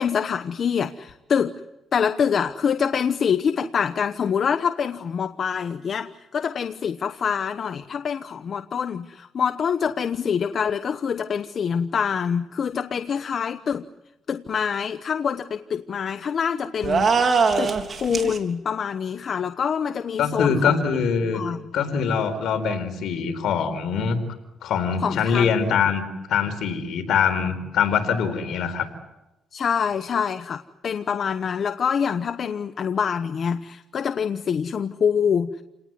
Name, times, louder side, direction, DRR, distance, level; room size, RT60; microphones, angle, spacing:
voice 1, 0.0-1.6 1.9-13.8 14.3-17.7 18.0-20.8 21.3-21.6 25.0-25.8 29.5-35.5, left 7 dB, 55° left, 9 dB, 1.0 m, -25 dB
sound 1, 16.8-18.4, right 5 dB, 45° right, 3.7 m, -21 dB
voice 2, 20.2-21.4 21.7-24.2 24.6-28.9, left 6 dB, 75° left, 8 dB, 4.5 m, -23 dB
29.5 x 19.5 x 9.5 m, 0.97 s
cardioid pair, 90°, 0 cm